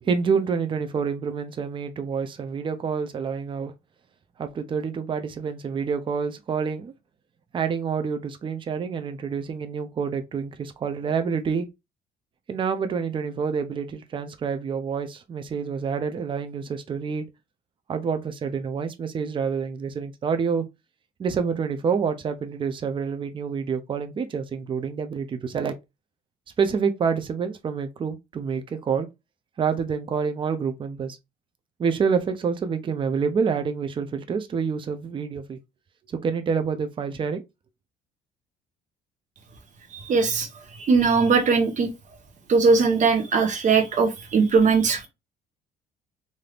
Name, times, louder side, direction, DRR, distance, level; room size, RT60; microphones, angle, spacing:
voice 1, 0.0-3.7 4.4-6.9 7.5-11.7 12.5-17.3 17.9-20.7 21.2-25.8 26.6-29.1 29.6-31.2 31.8-35.6 36.1-37.4, right 6 dB, 30° right, 0.5 m, -27 dB
voice 2, 39.9-40.5 40.8-41.9 42.5-45.1, right 4 dB, 45° right, 1.0 m, -20 dB
3.3 x 2.6 x 2.4 m
cardioid pair, 110°, 17 cm